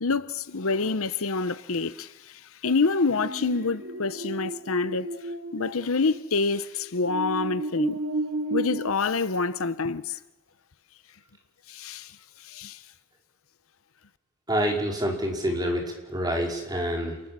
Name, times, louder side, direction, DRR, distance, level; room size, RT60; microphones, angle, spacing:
voice 1, 0.0-5.1 5.5-8.0 8.5-10.2 11.7-12.8, left 4 dB, 70° left, 0.9 m, -27 dB
sound 1, 3.2-6.4 7.0-8.9, right 2 dB, 60° right, 2.5 m, -33 dB
voice 2, 14.5-17.2, equal, 20° right, 4.9 m, -27 dB
28.0 x 20.5 x 7.5 m
head